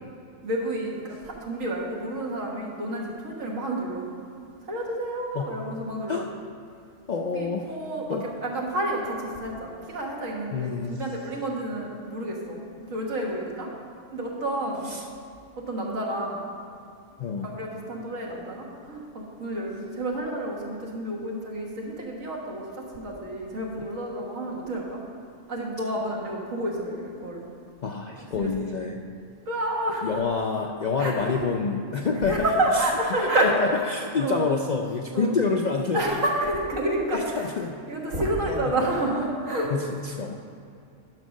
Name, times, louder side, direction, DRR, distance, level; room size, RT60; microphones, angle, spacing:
voice 1, 0.4-4.1 4.7-6.2 7.2-13.7 14.1-14.9 15.6-16.5 17.4-25.0 25.5-27.5 28.2-28.5 29.5-30.1 31.0-31.4 32.2-33.5 34.0-34.4 35.1-35.4 35.9-37.5 37.9-39.7, right 1 dB, 90° right, -1 dB, 1.8 m, -29 dB
voice 2, 7.1-7.7 8.1-8.3 10.5-11.0 14.8-15.0 17.2-17.6 27.8-29.0 30.0-32.4 32.7-32.9 33.2-36.0 37.1-37.7 38.4-38.8 39.7-40.3, left 4 dB, 60° left, 2 dB, 0.4 m, -27 dB
10.5 x 5.2 x 6.3 m, 2.4 s
omnidirectional pair, 1.3 m